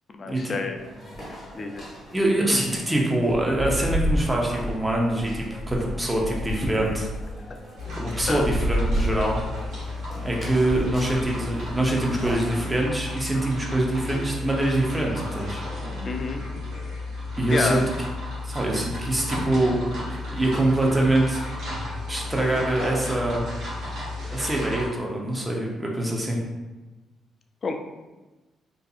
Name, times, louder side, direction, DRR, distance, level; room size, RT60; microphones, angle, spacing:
voice 1, 0.1-0.8 1.3-1.9 8.3-8.4 16.0-16.4 17.5-17.8 27.6-27.7, left 4 dB, 40° left, 4 dB, 0.3 m, -28 dB
sound 1, 0.8-12.6, equal, 20° left, 1.2 m, -32 dB
voice 2, 2.1-7.1 8.0-9.4 10.2-15.6 17.4-17.8 18.4-20.0 20.3-21.4 22.1-23.4 24.3-26.4, right 1 dB, 15° right, -2 dB, 0.6 m, -24 dB
sound 2, 7.8-24.9, left 2 dB, 75° right, 1.0 m, -33 dB
2.6 x 2.5 x 2.4 m, 1.2 s
cardioid pair, 90°, 0 cm